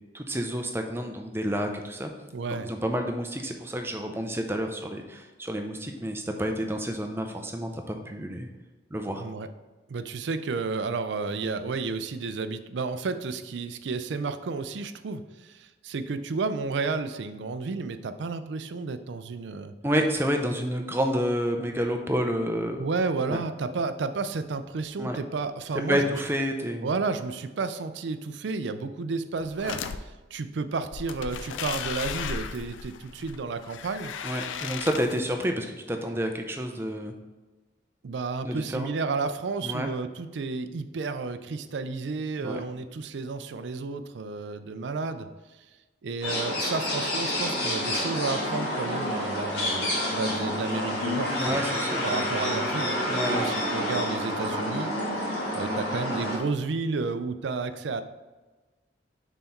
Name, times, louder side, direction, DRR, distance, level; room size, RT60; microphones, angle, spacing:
voice 1, 0.1-2.1 2.5-8.5 8.9-9.2 19.8-22.8 23.3-23.4 25.0-25.2 25.9-26.9 34.2-37.1 38.4-38.9 39.6-39.9 42.4-42.6 51.3-52.2 53.1-53.4, equal, 15° right, 4 dB, 0.5 m, -29 dB
voice 2, 2.3-2.7 9.2-9.5 9.9-19.7 22.8-26.2 26.8-34.1 38.0-45.3 45.5-45.6 46.0-51.7 52.0-53.0 53.3-54.9 55.5-58.0, right 4 dB, 75° right, 11 dB, 0.4 m, -32 dB
sound 1, 29.4-30.0 30.9-35.4, left 6 dB, 90° left, 0.4 m, -36 dB
sound 2, 46.2-56.4, left 1 dB, 70° left, 1.8 m, -29 dB
5.7 x 4.0 x 4.4 m, 1.2 s
head